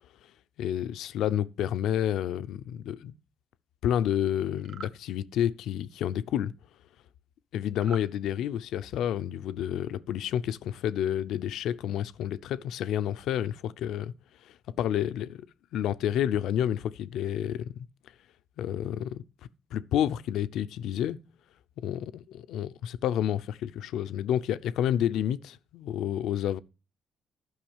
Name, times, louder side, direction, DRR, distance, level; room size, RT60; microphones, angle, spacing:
voice 1, 0.6-3.1 3.8-6.5 7.5-14.1 14.4-15.5 15.7-17.9 18.6-19.2 19.7-21.2 21.8-26.6, left 10 dB, 85° left, 0.6 m, -30 dB
sound 1, 4.6-5.0 7.8-8.1, right 6 dB, 55° right, 0.8 m, -43 dB
12.0 x 5.6 x 7.2 m
cardioid pair, 90°, 0 cm